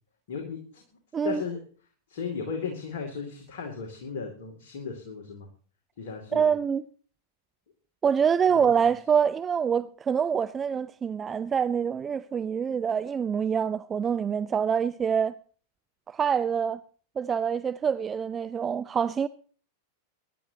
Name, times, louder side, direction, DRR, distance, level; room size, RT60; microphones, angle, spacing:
voice 1, 0.3-0.8 1.2-1.6 2.1-5.5 6.0-6.5 8.5-8.7, left 5 dB, 55° left, 2.5 m, -35 dB
voice 2, 6.3-6.8 8.0-15.4 16.1-16.8 17.2-19.3, right 7 dB, 20° right, 0.5 m, -26 dB
23.0 x 11.0 x 2.8 m
figure-of-eight pair, 90°, 0 cm